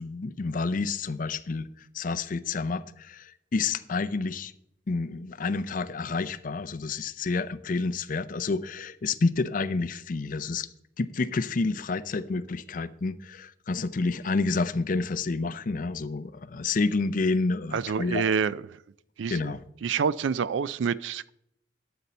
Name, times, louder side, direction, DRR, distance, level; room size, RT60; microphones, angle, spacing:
voice 1, 0.0-4.5 4.9-10.7 11.0-18.2 19.3-19.6, left 3 dB, 45° left, 14 dB, 0.5 m, -29 dB
voice 2, 17.7-18.8 19.2-19.5 19.8-21.3, right 6 dB, 75° right, 19 dB, 0.4 m, -27 dB
12.0 x 6.9 x 4.2 m, 0.76 s
head